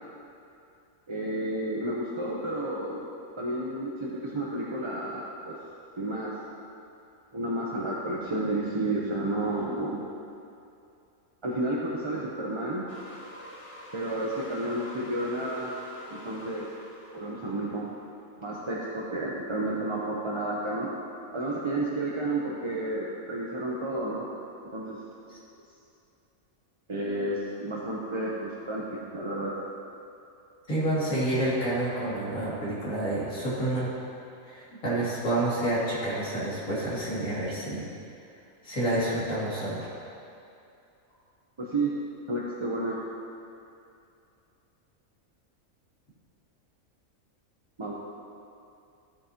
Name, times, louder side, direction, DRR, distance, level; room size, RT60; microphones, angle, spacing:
voice 1, 1.1-3.0 3.4-5.6 6.0-6.4 7.3-10.0 11.4-12.9 13.9-15.7 16.1-16.7 17.1-17.9 18.4-20.9 21.3-24.3 24.6-25.0 26.9-29.5 41.6-41.9 42.3-43.0 47.8-47.9, right 1 dB, 30° right, -4 dB, 0.7 m, -31 dB
sound 1, 12.9-18.2, equal, 25° left, 0.9 m, -47 dB
voice 2, 30.7-33.9 34.4-37.8 38.6-39.9, right 1 dB, 75° left, -8 dB, 3.0 m, -29 dB
14.5 x 8.6 x 2.9 m, 2.6 s
omnidirectional pair, 1.4 m